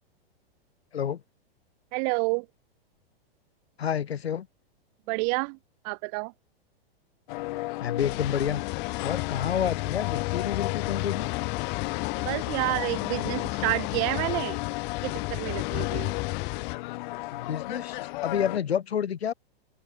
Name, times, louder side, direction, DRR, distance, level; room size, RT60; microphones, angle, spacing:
voice 1, 1.9-2.5 5.1-5.6 5.8-6.3 12.2-14.6 15.0-16.2, right 38 dB, 40° right, 1.5 m, -29 dB
voice 2, 3.8-4.5 7.8-8.6 9.0-11.3 17.3-19.3, left 8 dB, 90° left, 4.4 m, -29 dB
sound 1, 7.3-18.6, left 20 dB, 50° left, 1.9 m, -35 dB
sound 2, 8.0-16.8, left 26 dB, 35° left, 1.1 m, -32 dB
open air
hypercardioid pair, 135°, 30 cm